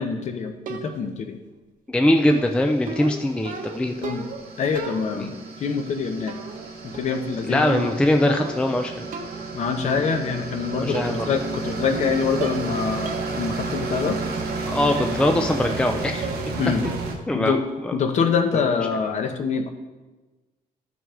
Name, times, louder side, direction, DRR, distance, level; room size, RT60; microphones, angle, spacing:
voice 1, 0.0-1.4 4.0-4.2 4.6-6.4 6.8-7.8 9.5-14.2 16.6-16.8 17.3-17.6 17.9-19.7, left 6 dB, 50° left, 6 dB, 0.9 m, -25 dB
sound 1, 0.7-1.2 2.3-4.5 4.8-5.4 6.3-6.7 6.9-8.7 9.1-9.5 10.4-10.5 10.9-11.4 11.7-12.1 12.4-12.7 13.1-13.3 13.7-13.8 15.0-15.2 15.6-15.9 16.2-16.6 16.8-17.2 17.5-17.8, right 4 dB, 55° right, 1.0 m, -34 dB
voice 2, 1.9-3.9 5.1-5.3 7.5-9.1 10.8-11.3 14.6-16.3 17.3-17.6 17.8-18.0 18.5-18.6, left 1 dB, 5° left, 4 dB, 0.4 m, -22 dB
sound 2, 2.5-17.2, right 3 dB, 75° right, 1.3 m, -32 dB
13.5 x 6.0 x 3.7 m, 1.2 s
cardioid pair, 170°, 16 cm